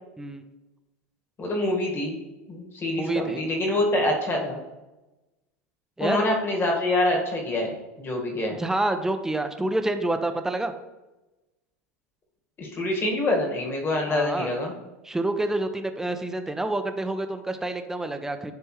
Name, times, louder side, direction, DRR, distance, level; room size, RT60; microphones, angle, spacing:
voice 1, 1.4-2.2 2.5-4.6 6.0-8.6 12.6-14.7, left 1 dB, 30° left, 0 dB, 1.7 m, -26 dB
voice 2, 3.0-3.4 6.0-6.2 8.6-10.7 14.1-14.5 15.0-18.5, right 2 dB, 5° right, 7 dB, 0.6 m, -28 dB
9.8 x 3.4 x 3.1 m, 1.1 s
hypercardioid pair, 95°, 8 cm